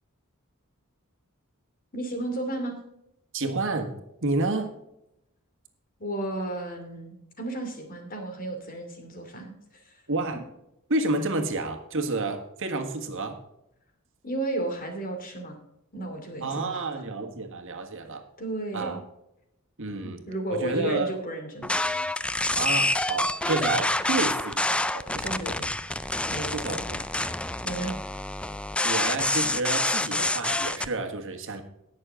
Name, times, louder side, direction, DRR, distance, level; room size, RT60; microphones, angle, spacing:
voice 1, 1.9-2.8 6.0-10.0 14.2-15.6 15.9-17.0 18.4-19.0 20.0-21.7 25.1-25.7 26.3-26.8 27.6-27.9, right 2 dB, 40° left, 4 dB, 2.6 m, -33 dB
voice 2, 3.3-3.9 4.2-4.7 10.1-10.4 10.9-13.4 16.4-18.2 18.7-19.0 19.8-20.2 20.5-21.1 22.5-25.7 26.5-26.8 28.8-31.6, right 2 dB, 60° right, 5 dB, 1.6 m, -30 dB
sound 1, 21.6-30.9, left 2 dB, 5° left, 0.4 m, -27 dB
18.5 x 6.6 x 3.7 m, 0.82 s
head